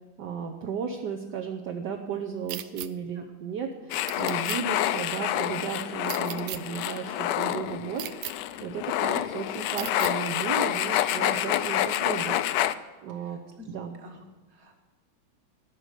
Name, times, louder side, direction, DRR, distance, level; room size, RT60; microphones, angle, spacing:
voice 1, 0.2-12.4 13.0-13.4 13.7-14.0, right 6 dB, 65° right, 2 dB, 1.4 m, -34 dB
sound 1, 2.5-2.9 4.1-4.6 6.0-6.6 8.0-8.3 9.8-10.1, right 14 dB, 80° right, 1.3 m, -36 dB
sound 2, 3.9-12.7, left 12 dB, 75° left, 1.0 m, -28 dB
voice 2, 13.1-13.7 14.0-14.8, left 2 dB, 35° right, 3 dB, 1.8 m, -51 dB
14.0 x 6.3 x 8.2 m, 1.2 s
omnidirectional pair, 2.2 m